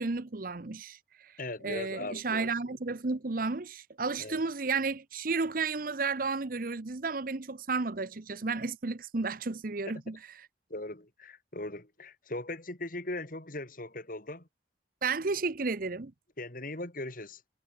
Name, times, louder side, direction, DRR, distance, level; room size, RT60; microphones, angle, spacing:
voice 1, 0.0-1.3 1.6-10.2 15.0-16.1, right 4 dB, 50° right, 0.8 m, -32 dB
voice 2, 1.4-2.5 4.2-4.4 10.1-10.2 10.7-14.5 16.4-17.4, left 2 dB, 50° left, 3.0 m, -39 dB
head